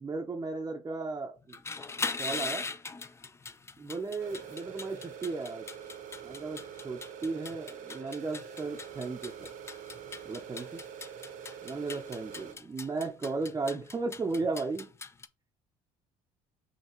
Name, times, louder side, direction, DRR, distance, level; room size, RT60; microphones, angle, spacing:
voice 1, 0.0-1.6 2.2-2.6 3.8-5.7 6.2-9.5 10.2-10.8 11.6-14.9, right 3 dB, 20° right, 1 dB, 0.6 m, -35 dB
sound 1, 1.4-15.3, left 4 dB, 20° left, 0.4 m, -41 dB
sound 2, 4.2-12.5, right 8 dB, 65° right, 0.8 m, -45 dB
5.6 x 2.8 x 3.0 m, 0.33 s
supercardioid pair, 85°, 14 cm